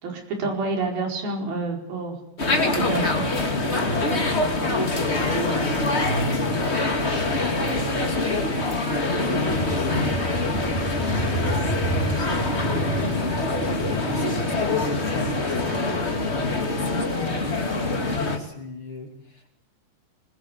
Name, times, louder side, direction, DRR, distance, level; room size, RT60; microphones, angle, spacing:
voice 1, 0.0-2.2 2.7-3.3, right 3 dB, 70° right, 2 dB, 6.5 m, -28 dB
sound 1, 2.4-18.4, left 2 dB, 20° left, 2.0 m, -25 dB
voice 2, 4.0-10.4 11.0-15.8 16.1-19.6, left 2 dB, 35° left, 3 dB, 3.1 m, -35 dB
Motorcycle, 9.5-17.1, right 1 dB, 5° left, 4.3 m, -31 dB
24.0 x 21.5 x 8.1 m, 0.76 s
omnidirectional pair, 4.5 m